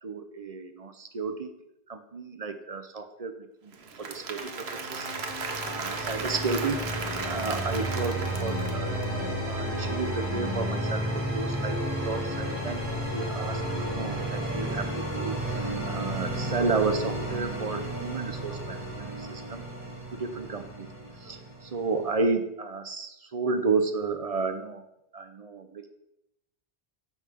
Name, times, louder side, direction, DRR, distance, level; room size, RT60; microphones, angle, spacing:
voice 1, 0.0-1.6 1.9-5.1 5.6-6.8 7.2-11.8 12.0-15.4 15.8-19.6 20.1-20.9 21.2-24.8 25.1-25.9, right 4 dB, 45° right, 8 dB, 0.6 m, -32 dB
Applause / Crowd, 3.7-9.0, right 4 dB, 80° right, 1.1 m, -36 dB
sound 1, 4.4-22.2, right 1 dB, 10° right, 2.5 m, -32 dB
5.6 x 5.5 x 6.2 m, 0.85 s
omnidirectional pair, 1.0 m